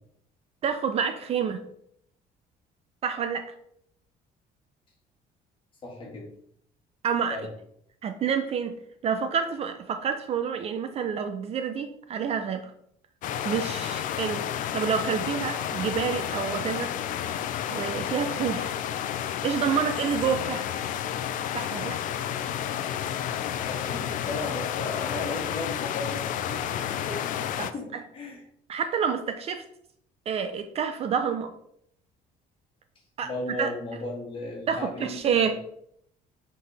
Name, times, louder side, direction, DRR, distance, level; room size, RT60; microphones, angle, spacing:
voice 1, 0.6-1.6 3.0-3.5 7.0-7.4 8.0-12.7 13.4-14.5 14.7-16.9 17.7-18.8 19.4-20.7 21.5-22.0 27.6-27.7 28.7-29.6 30.3-31.5 33.2-33.3 33.6-33.7 34.7-35.5, right 7 dB, 40° right, 8 dB, 0.5 m, -28 dB
voice 2, 5.8-6.3 7.3-7.5 23.6-28.4 33.2-35.5, left 2 dB, 30° left, -1 dB, 1.8 m, -36 dB
sound 1, 13.2-27.7, left 10 dB, 55° left, 0.4 m, -31 dB
7.4 x 4.2 x 3.3 m, 0.69 s
cardioid pair, 165°, 16 cm